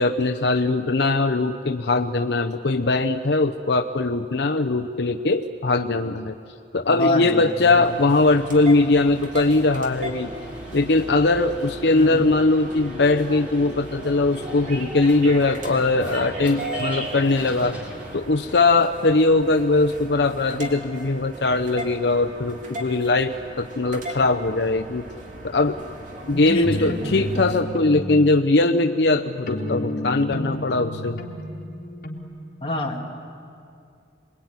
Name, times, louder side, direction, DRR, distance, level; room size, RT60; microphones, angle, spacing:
voice 1, 0.0-6.4 6.7-10.3 10.7-17.8 18.1-25.0 25.4-25.8 26.3-31.2, left 2 dB, 70° left, 6 dB, 0.7 m, -20 dB
voice 2, 6.9-7.4 7.8-8.0 11.9-12.2 26.3-27.4 32.6-33.0, left 2 dB, 30° left, 1 dB, 2.4 m, -27 dB
sound 1, 7.5-18.2, equal, 10° right, 4.0 m, -41 dB
sound 2, 7.6-27.6, right 1 dB, 45° right, 2.9 m, -37 dB
sound 3, 26.6-32.2, equal, 50° left, 2.7 m, -32 dB
26.5 x 22.0 x 9.6 m, 2.5 s
head